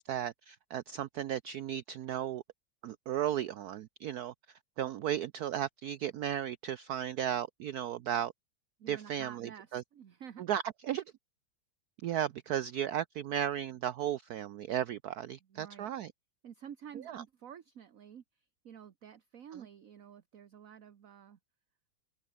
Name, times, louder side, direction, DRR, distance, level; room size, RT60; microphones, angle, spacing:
voice 1, 0.0-2.4 2.8-4.3 4.8-8.3 8.9-9.8 10.4-11.0 12.0-16.1 17.1-17.2, right 10 dB, 70° right, 0.9 m, -35 dB
voice 2, 8.8-10.4 15.5-15.9 16.4-21.4, right 8 dB, 50° right, 1.3 m, -50 dB
open air
omnidirectional pair, 2.2 m